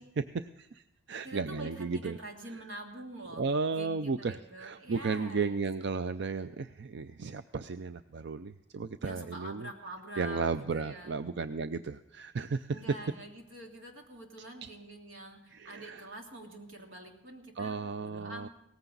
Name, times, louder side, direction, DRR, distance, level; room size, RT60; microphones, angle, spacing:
voice 1, 0.2-2.2 3.4-9.7 10.2-12.8 14.6-14.7 15.5-16.0 17.6-18.5, right 4 dB, 65° right, 11 dB, 0.5 m, -34 dB
voice 2, 1.2-5.7 9.0-11.2 12.7-18.5, right 1 dB, 90° right, 1 dB, 3.0 m, -46 dB
18.0 x 15.0 x 4.0 m, 0.89 s
head